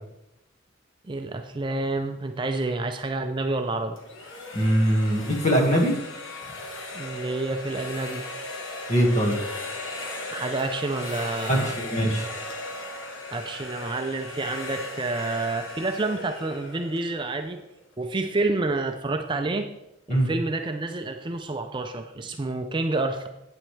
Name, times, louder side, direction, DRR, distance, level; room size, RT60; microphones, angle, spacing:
voice 1, 1.0-4.0 6.9-8.2 10.3-11.8 13.3-17.6 18.0-19.7 20.1-23.3, right 2 dB, 25° right, 6 dB, 0.4 m, -29 dB
sound 1, 4.0-17.8, left 2 dB, 70° left, 1.4 m, -37 dB
voice 2, 4.5-5.9 8.9-9.4 11.5-12.3 20.1-20.3, equal, 35° left, 0 dB, 1.7 m, -22 dB
9.0 x 8.7 x 3.3 m, 0.86 s
head